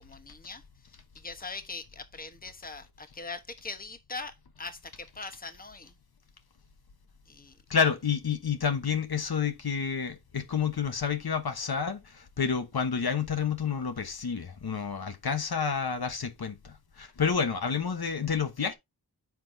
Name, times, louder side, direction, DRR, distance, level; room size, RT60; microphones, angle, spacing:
voice 1, 0.0-5.9 7.3-7.6, left 3 dB, 20° left, 1.1 m, -42 dB
voice 2, 7.7-18.7, left 6 dB, 70° left, 1.2 m, -29 dB
9.4 x 6.0 x 2.7 m
wide cardioid pair, 80°, 39 cm